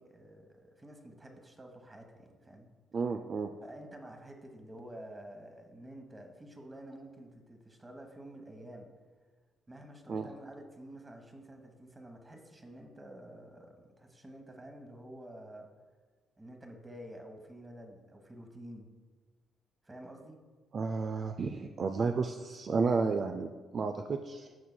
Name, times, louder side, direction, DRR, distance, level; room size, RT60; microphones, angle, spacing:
voice 1, 0.0-2.7 3.6-8.9 9.7-15.7 16.4-18.9 19.8-20.4, right 1 dB, 20° right, 4 dB, 1.1 m, -49 dB
voice 2, 2.9-3.5 10.1-10.3 20.7-24.5, right 4 dB, 45° right, 6 dB, 0.3 m, -32 dB
12.5 x 4.7 x 2.2 m, 1.4 s
cardioid pair, 90°, 0 cm